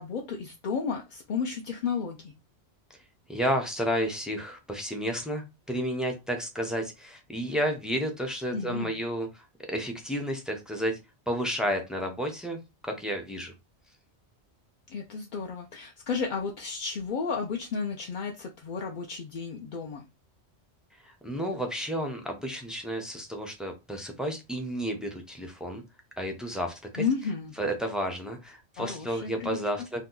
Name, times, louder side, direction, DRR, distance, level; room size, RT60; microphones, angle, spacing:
voice 1, 0.0-2.3 8.5-8.9 14.9-20.0 27.0-27.6 28.8-29.6, left 5 dB, 60° left, 1 dB, 0.6 m, -32 dB
voice 2, 3.3-11.0 11.3-13.5 21.0-25.8 26.2-27.0 27.6-30.0, equal, ahead, 2 dB, 0.3 m, -31 dB
2.7 x 2.3 x 3.7 m, 0.25 s
omnidirectional pair, 1.1 m